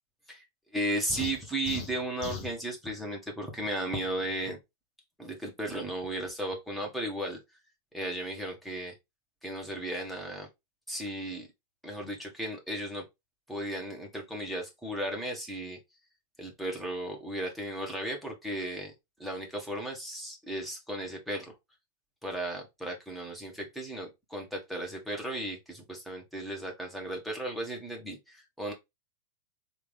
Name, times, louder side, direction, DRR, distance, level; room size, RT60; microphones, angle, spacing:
voice 1, 0.7-4.6 5.2-7.4 7.9-8.9 9.4-10.5 10.9-11.5 11.8-13.0 13.5-15.8 16.4-18.9 19.2-21.5 22.2-28.7, right 1 dB, ahead, 1.3 m, -35 dB
sound 1, 1.1-2.6, left 4 dB, 35° left, 1.0 m, -39 dB
3.3 x 2.6 x 3.3 m
figure-of-eight pair, 90°, 0 cm